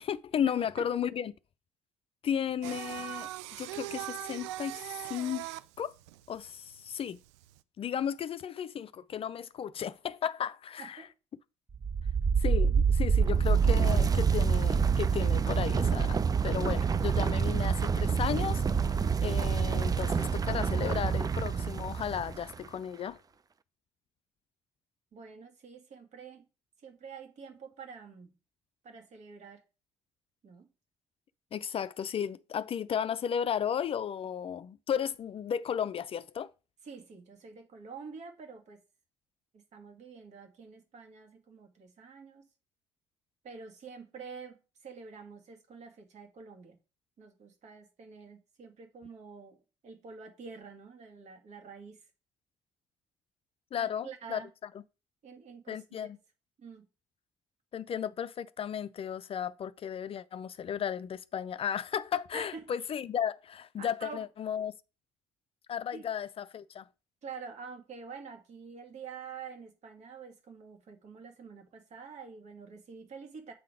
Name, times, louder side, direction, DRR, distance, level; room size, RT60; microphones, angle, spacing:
voice 1, 0.0-1.3 2.2-4.8 5.1-5.5 5.8-5.9 6.3-7.2 7.8-11.0 12.4-23.2 31.5-36.5 53.7-54.4 55.7-56.2 57.7-64.7 65.7-66.9, left 8 dB, 40° left, 0.5 m, -34 dB
Singing, 2.6-7.6, right 16 dB, 75° right, 0.4 m, -41 dB
voice 2, 10.8-11.1 25.1-26.5 26.8-28.3 28.8-29.6 30.4-30.7 36.8-38.8 39.5-42.5 43.4-46.8 47.2-52.1 53.8-54.5 55.2-56.1 56.6-56.9 62.3-62.7 63.8-64.2 65.9-66.1 67.2-73.5, right 5 dB, 50° right, 2.0 m, -47 dB
sound 1, 11.7-22.5, right 6 dB, 25° right, 0.5 m, -27 dB
8.3 x 3.8 x 5.0 m
hypercardioid pair, 55°, 15 cm